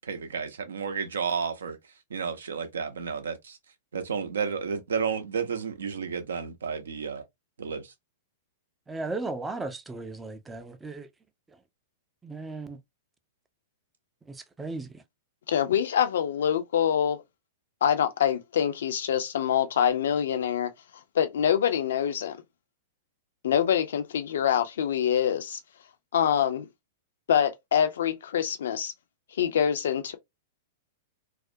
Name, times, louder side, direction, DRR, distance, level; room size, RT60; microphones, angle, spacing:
voice 1, 0.0-1.8 2.1-3.6 3.9-7.2 7.6-7.9, right 6 dB, 70° right, 0.5 m, -31 dB
voice 2, 8.9-11.1 12.2-12.8 14.3-15.0, right 3 dB, 10° right, 0.4 m, -36 dB
voice 3, 15.5-17.2 17.8-20.7 21.1-22.4 23.4-25.6 26.1-26.7 27.3-28.9 29.4-30.2, left 9 dB, 60° left, 0.4 m, -25 dB
2.4 x 2.1 x 2.5 m
figure-of-eight pair, 100°, 0 cm